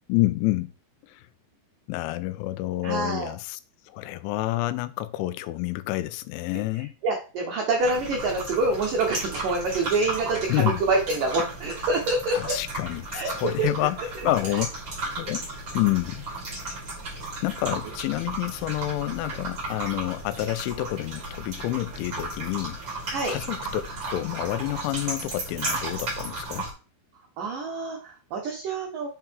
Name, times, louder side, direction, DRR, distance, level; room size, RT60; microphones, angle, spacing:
voice 1, 0.1-0.7 1.1-1.2 1.9-3.6 3.9-6.9 10.5-10.8 12.3-14.0 14.2-14.7 15.2-15.5 15.7-16.3 17.4-22.8 23.3-23.8 24.1-26.7, left 16 dB, 85° left, 3.0 m, -28 dB
voice 2, 2.8-3.3 6.7-12.6 13.1-13.3 13.6-13.7 23.1-23.4 27.4-29.1, right 3 dB, 80° right, 1.9 m, -26 dB
sound 1, 7.8-26.7, right 2 dB, 40° right, 1.8 m, -34 dB
7.2 x 4.7 x 4.5 m
omnidirectional pair, 5.6 m